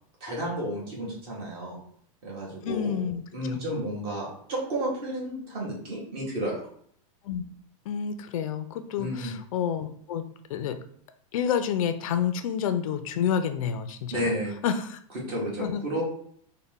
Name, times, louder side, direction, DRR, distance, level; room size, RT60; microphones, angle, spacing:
voice 1, 0.2-1.8 2.2-3.0 3.3-6.6 9.0-9.3 14.1-14.5 15.1-16.0, equal, 35° right, -3 dB, 1.4 m, -32 dB
voice 2, 2.6-3.2 3.5-3.6 7.2-7.4 7.9-10.2 10.5-10.8 11.3-14.2 14.6-15.0 15.6-15.8, left 8 dB, 70° left, 9 dB, 0.4 m, -29 dB
4.1 x 2.1 x 3.5 m, 0.63 s
supercardioid pair, 175°, 18 cm